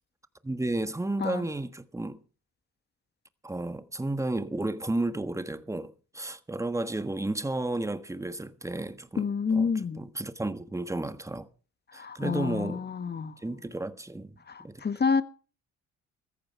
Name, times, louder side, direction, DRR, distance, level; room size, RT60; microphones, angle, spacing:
voice 1, 0.4-2.2 3.4-11.5 11.9-12.9 13.4-14.8, right 2 dB, 10° right, 1.4 m, -33 dB
voice 2, 9.2-10.0 12.0-13.3 14.5-15.2, left 5 dB, 35° left, 1.4 m, -28 dB
15.5 x 14.0 x 4.6 m
cardioid pair, 90°, 30 cm